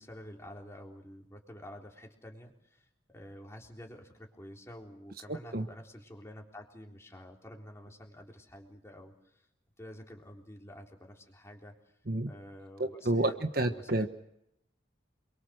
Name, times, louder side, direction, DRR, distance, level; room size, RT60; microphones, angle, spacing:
voice 1, 0.0-9.5 9.8-11.8 12.3-14.1, left 1 dB, 15° left, 1 dB, 3.7 m, -49 dB
voice 2, 5.3-5.7 12.1-12.3 12.8-14.1, right 1 dB, 50° right, 8 dB, 1.2 m, -30 dB
28.0 x 23.0 x 6.5 m, 0.79 s
head